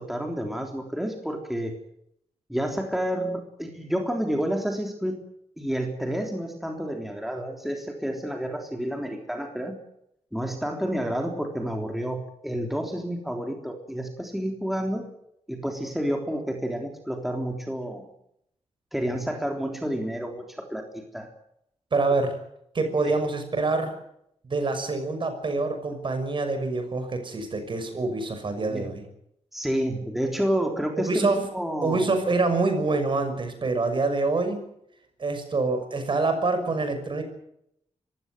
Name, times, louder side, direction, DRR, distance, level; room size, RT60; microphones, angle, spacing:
voice 1, 0.0-1.8 2.5-5.2 5.6-9.8 10.3-15.1 15.5-18.1 18.9-21.3 23.0-23.2 28.7-28.9 29.5-32.1, equal, ahead, 3 dB, 3.5 m, -30 dB
voice 2, 21.9-22.4 22.7-24.0 24.5-29.0 31.0-31.4 31.8-34.6 35.2-37.2, right 3 dB, 45° right, 8 dB, 6.1 m, -26 dB
25.0 x 16.0 x 9.3 m, 0.76 s
wide cardioid pair, 115°, 11 cm